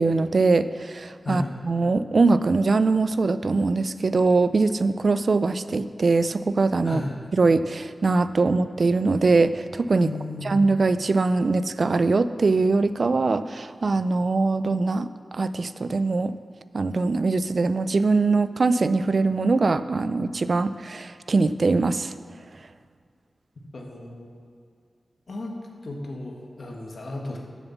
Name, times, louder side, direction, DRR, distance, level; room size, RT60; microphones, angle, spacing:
voice 1, 0.0-7.0 7.4-10.1 10.4-16.4 16.7-22.1, right 3 dB, 55° right, 13 dB, 0.4 m, -22 dB
voice 2, 6.8-7.1 10.0-10.6 23.7-24.3 25.3-25.5 25.8-27.4, left 2 dB, 60° left, 0 dB, 1.6 m, -34 dB
7.2 x 7.0 x 7.2 m, 2.2 s
wide cardioid pair, 100°, 0 cm